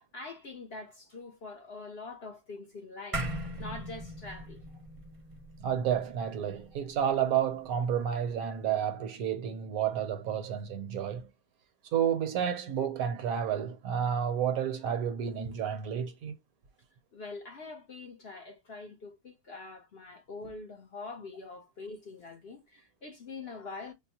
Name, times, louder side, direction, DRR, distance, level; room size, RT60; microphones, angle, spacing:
voice 1, 0.0-3.2 3.6-4.6 17.1-23.9, left 3 dB, 50° left, 0.9 m, -44 dB
sound 1, 3.1-7.8, right 1 dB, 30° right, 0.7 m, -40 dB
voice 2, 5.6-11.3 11.9-16.3, right 8 dB, 70° right, 1.2 m, -30 dB
5.3 x 2.1 x 2.8 m
omnidirectional pair, 1.6 m